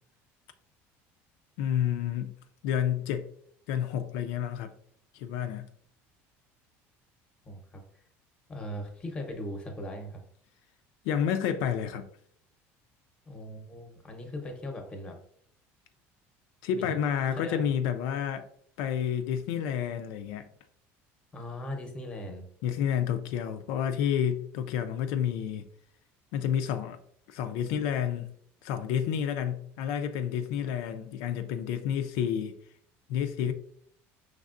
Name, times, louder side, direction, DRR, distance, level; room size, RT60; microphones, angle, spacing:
voice 1, 1.6-2.3 2.6-3.3 3.7-4.7 5.1-5.7 11.0-12.0 16.6-18.5 18.8-20.5 22.6-25.6 26.3-27.0 27.3-28.3 28.6-32.5 33.1-33.5, left 9 dB, 75° left, 7 dB, 0.4 m, -30 dB
voice 2, 7.4-7.8 8.5-10.2 13.3-15.2 16.7-17.0 17.3-17.7 21.3-22.4, left 1 dB, 15° left, 3 dB, 0.8 m, -39 dB
5.2 x 3.3 x 2.5 m, 0.64 s
cardioid pair, 155°, 6 cm